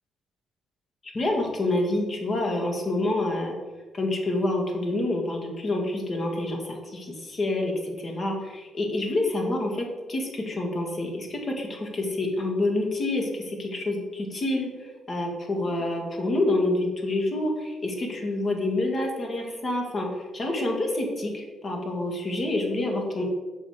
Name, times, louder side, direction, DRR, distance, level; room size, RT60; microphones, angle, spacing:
voice 1, 1.0-3.6 3.9-23.2, left 2 dB, 40° left, 1 dB, 1.9 m, -27 dB
6.8 x 5.7 x 4.9 m, 1.3 s
cardioid pair, 90°, 0 cm